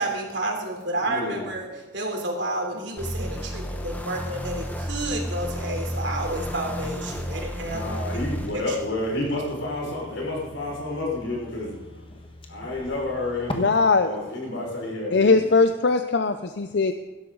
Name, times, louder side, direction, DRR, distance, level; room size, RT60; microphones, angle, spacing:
voice 1, 0.0-8.0 8.5-8.8, right 1 dB, 65° right, 1 dB, 3.4 m, -30 dB
voice 2, 1.0-1.4 7.6-11.7 12.5-13.7 14.0-15.4, left 2 dB, 75° left, -2 dB, 5.4 m, -30 dB
sound 1, 3.0-8.5, equal, 10° left, 1.1 m, -32 dB
sound 2, 7.0-13.5, left 1 dB, 25° left, 1.4 m, -42 dB
voice 3, 13.6-14.1 15.1-16.9, left 4 dB, 60° left, 9 dB, 0.6 m, -20 dB
17.0 x 12.5 x 3.9 m, 1.3 s
head